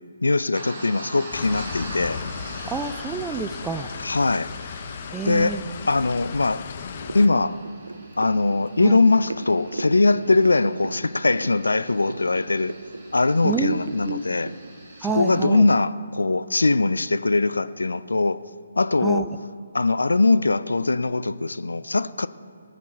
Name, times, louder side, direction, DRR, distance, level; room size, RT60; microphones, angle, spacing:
voice 1, 0.2-2.2 4.0-4.5 5.2-5.6 5.9-6.6 7.1-7.6 8.2-12.7 13.1-14.5 15.1-18.4 18.8-19.3 19.7-22.3, left 3 dB, 75° left, 0.5 m, -21 dB
sound 1, 0.5-15.5, right 1 dB, 45° right, 3.3 m, -43 dB
sound 2, 1.3-7.3, left 7 dB, 40° left, 0.7 m, -36 dB
voice 2, 2.7-3.9 5.1-5.7 8.8-9.0 13.4-13.8 14.0-14.2 15.0-15.7 19.0-19.3, right 4 dB, 10° right, 0.5 m, -28 dB
sound 3, 6.9-16.3 16.6-16.7, right 2 dB, 75° right, 0.5 m, -38 dB
19.0 x 8.3 x 4.4 m
figure-of-eight pair, 140°, 0 cm